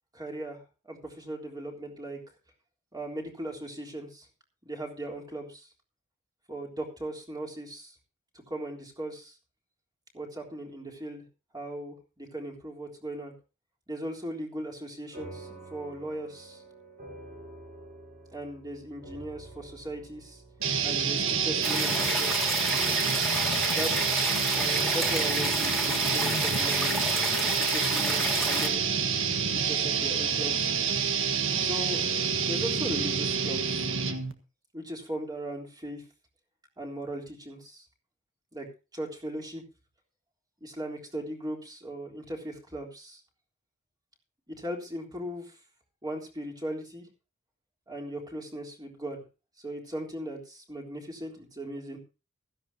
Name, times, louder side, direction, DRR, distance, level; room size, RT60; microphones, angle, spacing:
voice 1, 0.1-2.2 2.9-4.3 4.6-5.7 6.5-7.9 8.5-9.3 10.1-11.2 11.5-13.3 13.9-16.6 18.3-20.4 20.8-22.3 23.7-24.3 24.5-27.0 27.4-28.8 29.5-30.7 31.6-32.0 32.5-33.9 34.7-36.0 36.8-37.8 38.5-38.7 38.9-39.6 40.6-43.2 44.5-45.6 46.0-47.1 47.9-49.2 49.6-52.0, right 1 dB, 20° right, 1 dB, 3.5 m, -38 dB
sound 1, 15.1-23.9, right 2 dB, 35° right, 5.2 m, -49 dB
sound 2, 20.6-34.3, right 6 dB, 60° right, 1.6 m, -28 dB
sound 3, 21.6-28.7, left 1 dB, ahead, 2.7 m, -31 dB
16.0 x 13.5 x 2.8 m, 0.32 s
head